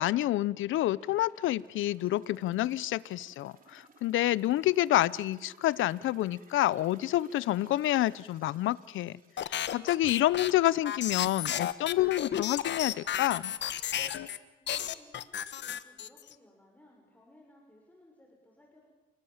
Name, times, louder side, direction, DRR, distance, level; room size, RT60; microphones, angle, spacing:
voice 1, 0.0-13.5, left 15 dB, 80° left, 21 dB, 0.7 m, -28 dB
sound 1, 0.6-11.4 11.8-11.9, right 4 dB, 45° right, 4.2 m, -60 dB
sound 2, 9.4-14.4 14.7-16.3, left 10 dB, 65° left, 1.3 m, -33 dB
voice 2, 14.6-18.9, left 1 dB, 10° left, -1 dB, 6.4 m, -60 dB
29.5 x 20.5 x 7.3 m, 1.1 s
cardioid pair, 90°, 20 cm